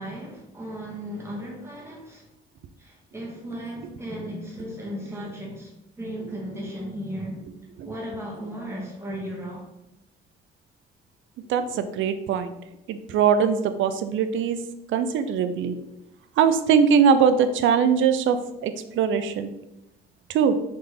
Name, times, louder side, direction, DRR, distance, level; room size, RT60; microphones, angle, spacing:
voice 1, 0.0-2.2 2.8-7.4 7.8-9.7, equal, 15° right, -3 dB, 1.4 m, -35 dB
voice 2, 11.5-12.5 12.9-14.6 14.9-15.8 16.4-18.4 18.6-19.5 20.3-20.6, right 7 dB, 75° right, 10 dB, 0.5 m, -21 dB
4.0 x 3.3 x 3.4 m, 0.90 s
cardioid pair, 90°, 20 cm